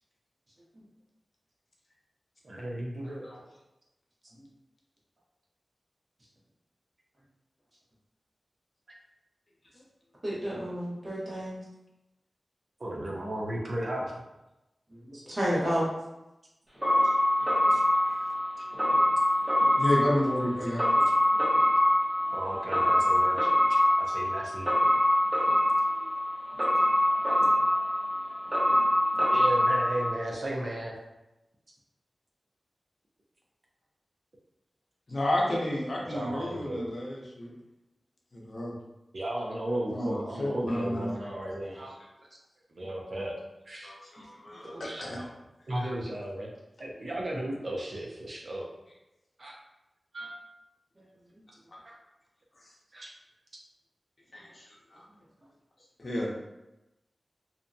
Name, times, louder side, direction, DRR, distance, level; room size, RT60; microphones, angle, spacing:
voice 1, 2.4-3.3 12.8-14.1 15.1-15.2 17.7-17.8 18.6-18.7 22.3-24.7 29.3-30.9 36.1-36.9 39.1-41.9 42.8-43.4 43.7-43.9 44.6-45.3 45.7-46.5 46.8-48.7 49.4-49.5 50.1-50.3 51.8-52.0 52.9-53.1, right 1 dB, 55° right, -2 dB, 0.4 m, -35 dB
voice 2, 10.2-11.6 14.9-15.9 44.5-44.8 51.0-51.1, equal, 40° right, -7 dB, 1.1 m, -32 dB
sound 1, 16.8-30.1, left 1 dB, 20° right, 0.8 m, -25 dB
voice 3, 19.7-20.9 35.1-37.5 38.3-38.7 39.9-41.1 43.8-45.2 45.8-45.9 54.3-54.6 54.9-55.0 56.0-56.3, left 1 dB, 55° left, -3 dB, 0.6 m, -31 dB
2.7 x 2.2 x 2.6 m, 0.95 s
wide cardioid pair, 70°, 0 cm